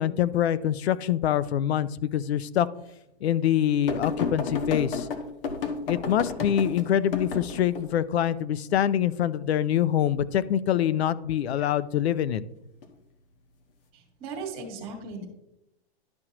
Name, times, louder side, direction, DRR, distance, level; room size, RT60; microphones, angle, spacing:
voice 1, 0.0-2.7 3.2-5.1 5.9-12.4, left 10 dB, 70° left, 17 dB, 0.6 m, -25 dB
sound 1, 3.9-7.8 11.3-11.7 12.8-12.9, left 5 dB, 55° left, 1.3 m, -31 dB
voice 2, 13.9-15.2, right 4 dB, 15° right, 0 dB, 1.7 m, -37 dB
11.5 x 6.1 x 2.9 m, 0.84 s
hypercardioid pair, 175°, 33 cm